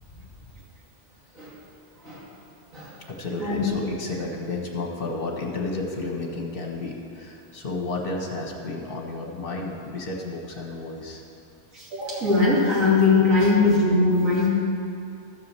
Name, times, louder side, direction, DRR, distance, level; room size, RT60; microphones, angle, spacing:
voice 1, 3.1-11.2 13.4-13.5, left 3 dB, 45° left, 0 dB, 1.6 m, -32 dB
voice 2, 11.7-14.5, left 3 dB, 80° right, -7 dB, 3.0 m, -20 dB
13.5 x 5.0 x 7.5 m, 2.6 s
omnidirectional pair, 1.4 m